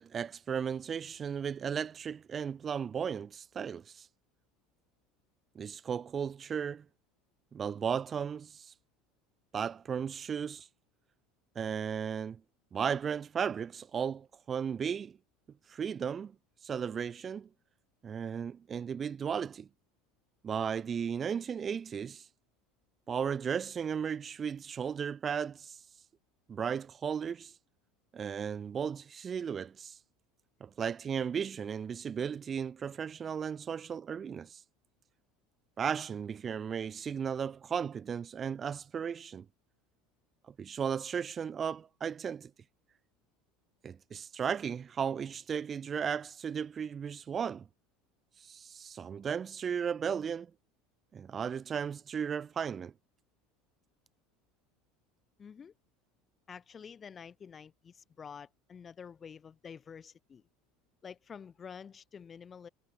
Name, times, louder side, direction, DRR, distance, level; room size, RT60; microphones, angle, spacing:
voice 1, 0.0-4.1 5.6-6.8 7.5-8.7 9.5-10.7 11.6-12.4 12.7-15.1 15.7-16.3 16.6-17.5 18.0-19.7 20.4-22.3 23.1-25.8 26.5-27.5 28.1-30.0 30.6-34.6 35.8-39.5 40.5-42.5 43.8-47.6 48.4-50.5 51.1-52.9, right 7 dB, 30° right, 0.3 m, -35 dB
voice 2, 55.4-55.7 56.5-60.4 61.0-62.7, left 7 dB, 30° left, 0.8 m, -48 dB
figure-of-eight pair, 70°, 0 cm